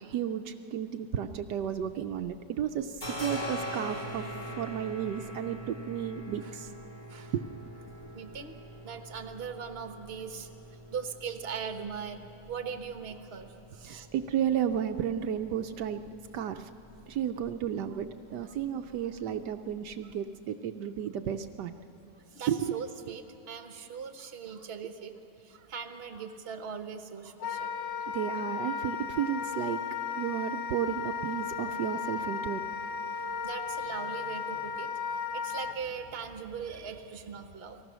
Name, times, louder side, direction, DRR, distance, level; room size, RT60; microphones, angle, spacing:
voice 1, 0.0-6.7 7.3-7.5 13.8-16.0 16.3-16.7 17.1-21.7 22.5-22.8 28.1-29.8 30.2-32.6, right 9 dB, 75° right, 7 dB, 1.2 m, -33 dB
sound 1, 1.6-2.4 2.6-20.1, equal, 25° left, 3.1 m, -44 dB
voice 2, 8.1-8.6 8.8-12.2 12.5-14.1 22.1-27.7 33.1-37.8, right 6 dB, 40° right, 7 dB, 1.2 m, -40 dB
Wind instrument woodwind instrument, 27.4-35.8, left 6 dB, 80° left, 1.5 m, -35 dB
29.5 x 20.0 x 6.2 m, 2.9 s
omnidirectional pair, 1.9 m